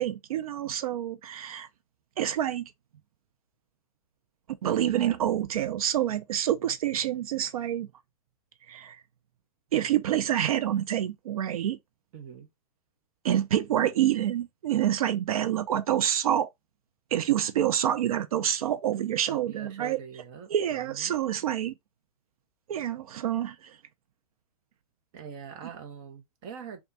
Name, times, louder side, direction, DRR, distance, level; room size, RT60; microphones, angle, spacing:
voice 1, 0.0-1.7 2.2-2.6 4.6-7.9 8.7-9.0 9.7-11.8 13.2-16.5 17.1-20.0 20.5-21.8 22.7-23.8, right 11 dB, 75° right, 0.6 m, -27 dB
voice 2, 12.1-12.5 19.3-21.1 25.1-26.8, right 7 dB, 40° right, 1.0 m, -43 dB
3.4 x 2.4 x 4.0 m
hypercardioid pair, 145°, 19 cm